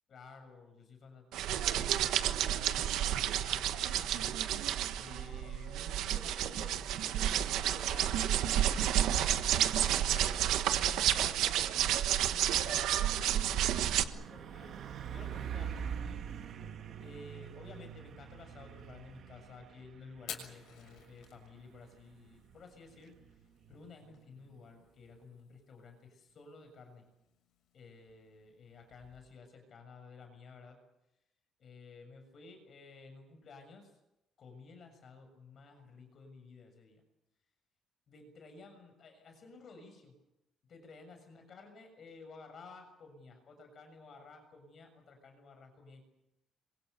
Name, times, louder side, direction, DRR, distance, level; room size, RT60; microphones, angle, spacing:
voice 1, 0.1-4.4 5.0-9.2 9.7-14.8 15.1-16.2 17.0-23.2 23.7-27.0 27.7-30.8 31.6-33.9 34.4-37.0 38.1-40.1 40.7-46.0, left 3 dB, 35° left, 6 dB, 6.9 m, -53 dB
sound 1, 1.3-14.0, right 11 dB, 90° right, 1.4 m, -30 dB
Truck, 11.3-25.2, right 8 dB, 50° right, 1.7 m, -46 dB
Fire, 20.2-29.4, left 9 dB, 75° left, 6.6 m, -54 dB
27.5 x 24.0 x 6.9 m, 0.88 s
cardioid pair, 180°, 0 cm